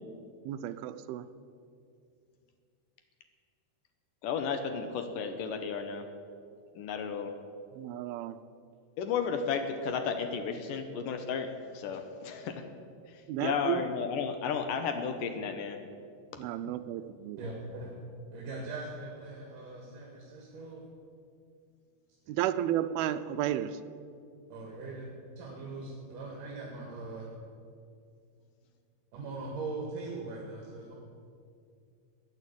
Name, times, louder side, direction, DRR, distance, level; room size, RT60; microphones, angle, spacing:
voice 1, 0.5-1.2 7.8-8.4 13.3-13.8 16.4-17.4 22.3-23.7, right 12 dB, 80° right, 11 dB, 2.4 m, -32 dB
voice 2, 4.2-6.1 6.8-7.3 9.0-12.7 13.1-15.8 16.6-16.8, left 6 dB, 70° left, 7 dB, 2.3 m, -33 dB
voice 3, 17.4-17.9 18.3-20.8 24.5-25.1 25.4-27.3 29.1-30.9, right 3 dB, 60° right, -2 dB, 3.3 m, -41 dB
15.5 x 9.2 x 8.6 m, 2.3 s
omnidirectional pair, 4.5 m